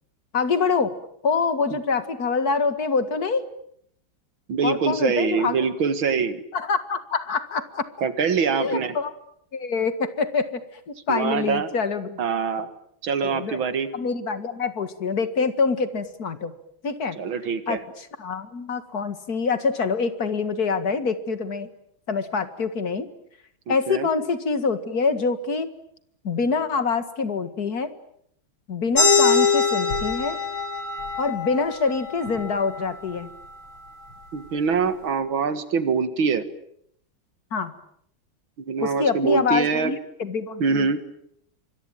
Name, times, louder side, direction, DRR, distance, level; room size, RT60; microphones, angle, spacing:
voice 1, 0.3-0.9 1.2-3.4 4.6-5.6 6.5-7.9 8.6-9.1 9.5-12.2 13.2-13.6 13.9-16.5 16.8-17.2 17.7-21.7 22.1-23.1 23.7-25.7 26.2-27.9 28.7-30.4 31.2-33.3 37.5-37.7 38.8-40.9, left 5 dB, 50° left, 11 dB, 2.3 m, -25 dB
voice 2, 4.5-6.4 8.0-8.9 11.1-11.7 12.2-12.7 13.0-13.9 17.2-17.8 23.7-24.1 34.3-36.4 38.6-40.0 40.6-41.0, right 5 dB, 75° right, 12 dB, 2.5 m, -24 dB
sound 1, 29.0-34.1, left 4 dB, 75° left, 6.2 m, -24 dB
25.5 x 22.0 x 9.2 m, 0.71 s
omnidirectional pair, 2.2 m